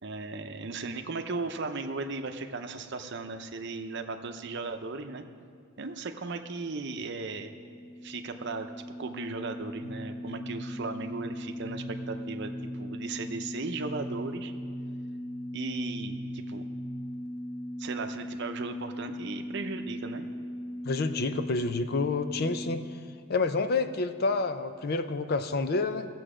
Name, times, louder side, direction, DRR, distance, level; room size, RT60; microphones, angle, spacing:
voice 1, 0.0-5.2 5.8-7.5 8.0-8.7 9.0-14.5 15.5-16.6 17.8-20.3, right 3 dB, 55° right, 6 dB, 0.7 m, -36 dB
sound 1, 6.6-22.8, equal, 25° left, 1.1 m, -39 dB
sound 2, 9.8-17.4, right 1 dB, 80° right, 0.9 m, -45 dB
voice 2, 20.8-22.8 23.3-26.1, left 3 dB, 45° left, 10 dB, 0.5 m, -28 dB
15.0 x 7.7 x 5.0 m, 2.1 s
head